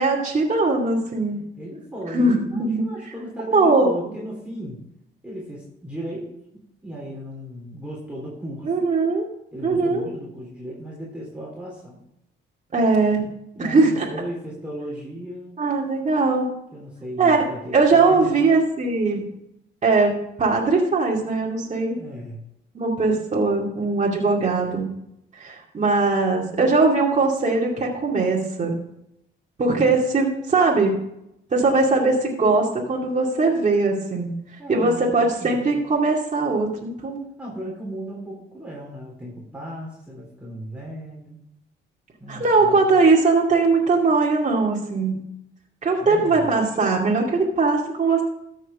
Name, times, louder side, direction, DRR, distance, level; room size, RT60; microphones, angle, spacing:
voice 1, 0.0-1.4 2.1-2.8 3.5-3.9 8.6-9.3 9.6-10.0 12.7-13.2 13.6-14.1 15.6-16.5 17.2-17.4 17.7-19.2 19.8-20.1 20.4-22.0 22.7-24.9 25.4-28.7 29.6-31.0 31.5-34.3 34.7-37.2 42.3-45.2 45.8-48.2, right 3 dB, 35° right, -2 dB, 2.4 m, -20 dB
voice 2, 1.6-4.8 5.2-6.3 6.8-8.9 9.5-12.0 13.6-15.5 16.7-18.6 21.9-22.4 34.6-35.8 37.4-41.4 42.2-43.0 46.0-46.5, equal, 5° right, -5 dB, 3.7 m, -36 dB
13.5 x 6.6 x 3.6 m, 0.80 s
cardioid pair, 90°, 20 cm